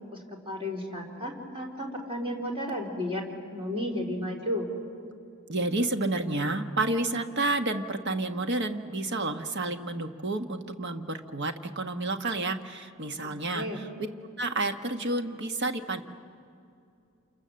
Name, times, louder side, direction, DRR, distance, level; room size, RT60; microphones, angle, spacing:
voice 1, 0.1-3.2 3.5-4.7 13.2-13.8, left 1 dB, 25° right, 0 dB, 3.8 m, -33 dB
voice 2, 5.5-13.9 14.4-16.0, right 2 dB, 55° right, 7 dB, 1.3 m, -30 dB
28.5 x 27.5 x 7.7 m, 2.5 s
head